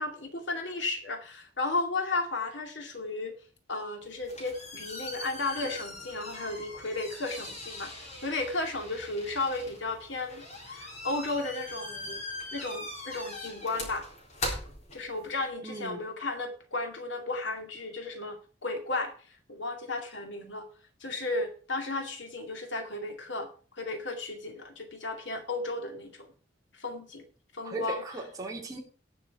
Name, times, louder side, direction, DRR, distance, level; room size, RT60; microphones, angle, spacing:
voice 1, 0.0-3.3 3.7-12.2 12.5-14.1 14.9-19.1 19.5-20.7 21.0-23.5 23.7-26.3 26.7-27.3 27.5-28.0, left 2 dB, 80° left, 2.3 m, -34 dB
sound 1, 4.0-15.5, left 2 dB, 40° left, 3.9 m, -41 dB
voice 2, 15.6-16.0 27.6-28.8, right 2 dB, 20° right, 2.5 m, -37 dB
18.5 x 6.2 x 4.8 m
head